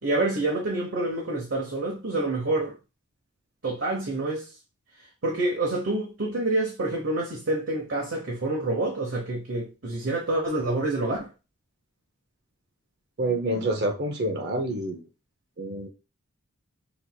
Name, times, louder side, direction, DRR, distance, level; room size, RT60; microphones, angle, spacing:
voice 1, 0.0-2.7 3.6-4.5 5.2-11.3, right 2 dB, 70° right, 1.0 m, -27 dB
voice 2, 13.2-15.1 15.6-15.9, right 1 dB, 50° right, 0.6 m, -27 dB
5.9 x 3.4 x 2.2 m
head